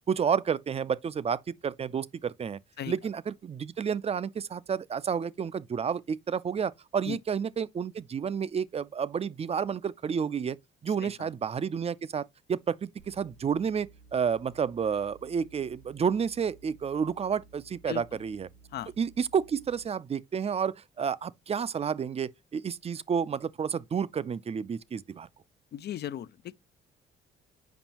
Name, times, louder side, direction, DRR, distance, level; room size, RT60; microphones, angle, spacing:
voice 1, 0.1-2.6 2.9-10.6 10.8-18.5 19.0-25.3, right 7 dB, 30° right, 0.4 m, -30 dB
voice 2, 10.9-11.3 17.9-18.2 18.7-18.9 25.7-26.6, left 10 dB, 55° left, 0.4 m, -38 dB
sound 1, 13.0-19.8, right 3 dB, 85° right, 1.2 m, -56 dB
7.1 x 5.2 x 2.9 m
cardioid pair, 90°, 20 cm